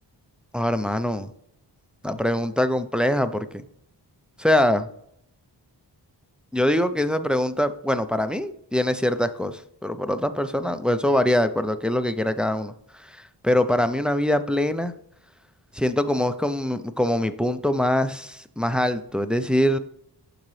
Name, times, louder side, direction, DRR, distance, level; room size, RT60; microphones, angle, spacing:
voice 1, 0.5-1.3 2.0-3.6 4.4-4.9 6.5-14.9 15.7-19.8, left 1 dB, ahead, 9 dB, 0.5 m, -23 dB
11.5 x 3.9 x 3.2 m, 0.69 s
wide cardioid pair, 75°, 44 cm